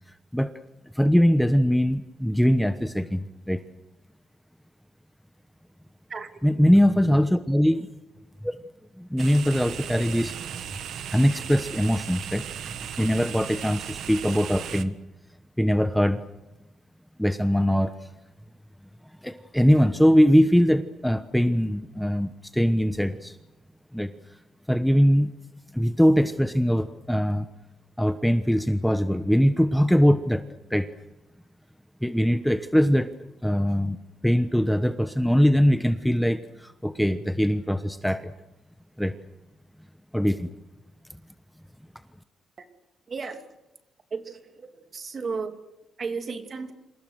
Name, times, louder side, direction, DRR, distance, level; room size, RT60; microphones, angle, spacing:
voice 1, 0.9-3.6 6.4-7.9 8.4-8.6 9.0-10.3 11.1-14.9 15.6-16.2 17.2-17.9 19.2-23.4 23.9-24.1 24.7-25.3 25.7-27.4 28.0-30.4 30.7-30.9 32.0-33.1 33.4-34.0 34.2-38.3 39.0-39.1 40.1-40.5, equal, ahead, 10 dB, 1.1 m, -22 dB
sound 1, 9.2-14.8, right 9 dB, 75° right, 1.6 m, -36 dB
voice 2, 43.1-43.6 44.1-45.6 46.0-46.7, right 5 dB, 40° right, 7 dB, 2.8 m, -34 dB
27.5 x 27.5 x 6.5 m, 0.96 s
cardioid pair, 125°, 0 cm